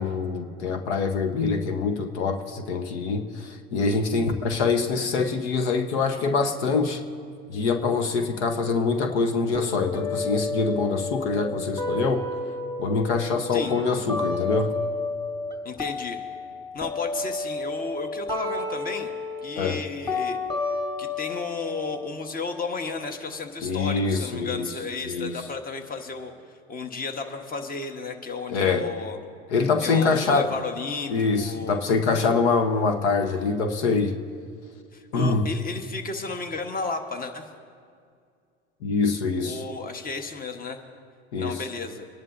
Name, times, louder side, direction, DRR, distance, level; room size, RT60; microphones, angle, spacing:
voice 1, 0.0-7.0 7.5-12.3 12.8-14.8 19.6-19.8 23.6-24.7 25.0-25.3 28.5-28.9 29.5-30.5 31.1-34.2 35.1-35.5 38.8-39.6 41.3-41.6, left 4 dB, 80° left, 6 dB, 1.1 m, -24 dB
sound 1, 9.5-15.5 15.8-23.6, left 3 dB, 10° left, 3.1 m, -32 dB
voice 2, 15.6-16.2 16.7-19.1 19.4-20.4 21.0-26.3 26.7-29.2 29.8-31.8 34.9-37.5 39.4-40.8 41.4-42.1, left 4 dB, 25° left, 6 dB, 1.2 m, -33 dB
26.5 x 11.0 x 2.7 m, 2.2 s
hypercardioid pair, 80°, 34 cm